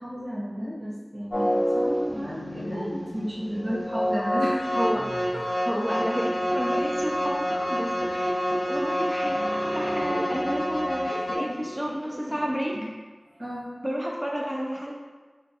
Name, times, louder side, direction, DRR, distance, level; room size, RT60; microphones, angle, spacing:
voice 1, 0.0-4.7 5.3-5.4 8.1-8.2 10.1-10.3 11.1-12.9 13.3-13.7, equal, 70° right, -8 dB, 1.0 m, -34 dB
sound 1, 1.3-11.4, equal, 70° left, 0.7 m, -27 dB
voice 2, 4.7-5.1 5.6-9.4 9.7-12.7 13.8-14.9, equal, 10° right, -2 dB, 0.3 m, -31 dB
2.9 x 2.1 x 2.8 m, 1.3 s
wide cardioid pair, 45°, 0 cm